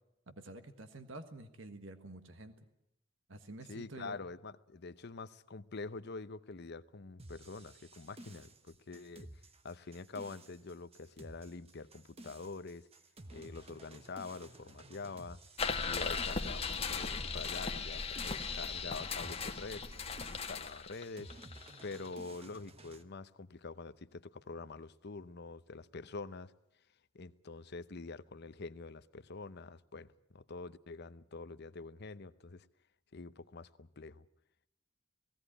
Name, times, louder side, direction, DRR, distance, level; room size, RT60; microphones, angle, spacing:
voice 1, 0.3-2.7 3.3-4.2, right 2 dB, 75° right, 1.6 m, -49 dB
voice 2, 3.7-12.9 13.3-15.4 15.8-19.9 20.3-21.3 21.8-26.5 27.1-32.7 33.1-34.2, left 3 dB, 55° left, 0.8 m, -46 dB
sound 1, 7.2-23.0, right 1 dB, 30° right, 1.2 m, -54 dB
sound 2, 15.6-22.1, left 5 dB, 30° left, 1.4 m, -38 dB
18.0 x 17.0 x 9.9 m
head